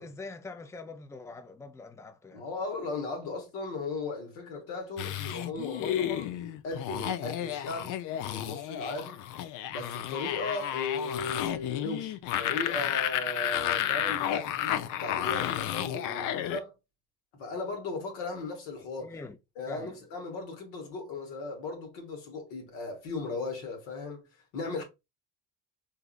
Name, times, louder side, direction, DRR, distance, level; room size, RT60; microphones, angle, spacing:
voice 1, 0.0-2.4 19.0-19.4 19.7-20.0, left 3 dB, 10° left, 0.4 m, -43 dB
voice 2, 2.3-8.0 8.3-9.2 9.7-16.7 17.3-19.1 19.6-24.3 24.5-24.8, left 3 dB, 85° left, 1.2 m, -37 dB
sound 1, 5.0-16.6, left 11 dB, 65° left, 0.5 m, -32 dB
3.7 x 2.6 x 2.4 m
supercardioid pair, 70°, 34 cm